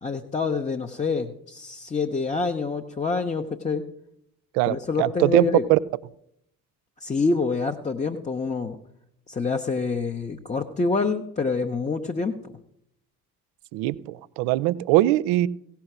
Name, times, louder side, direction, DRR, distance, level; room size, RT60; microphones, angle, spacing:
voice 1, 0.0-3.8 4.7-5.7 7.0-8.8 9.3-12.3, left 4 dB, 15° left, 4 dB, 0.7 m, -26 dB
voice 2, 4.5-5.4 5.7-5.8 13.7-15.5, right 17 dB, 55° right, 20 dB, 0.5 m, -21 dB
16.5 x 5.8 x 5.9 m, 0.75 s
figure-of-eight pair, 50°, 46 cm